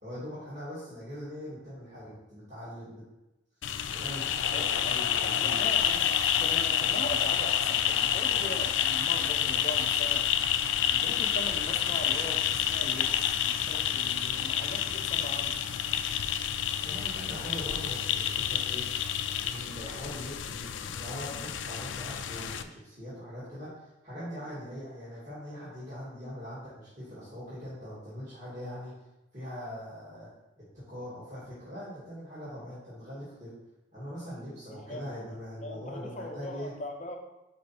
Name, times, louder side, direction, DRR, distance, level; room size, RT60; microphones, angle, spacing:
voice 1, 0.0-3.0 3.8-5.6 8.3-8.5 16.8-18.8 19.4-28.9 29.3-30.3 30.6-33.5 33.9-36.7, equal, 40° right, -10 dB, 2.2 m, -42 dB
sound 1, 3.6-22.6, left 9 dB, 80° left, 0.4 m, -29 dB
voice 2, 4.5-6.1 6.4-10.3 10.9-15.6 34.9-35.1 35.6-37.2, left 1 dB, 35° left, 2 dB, 0.7 m, -40 dB
5.1 x 5.0 x 4.3 m, 0.96 s
head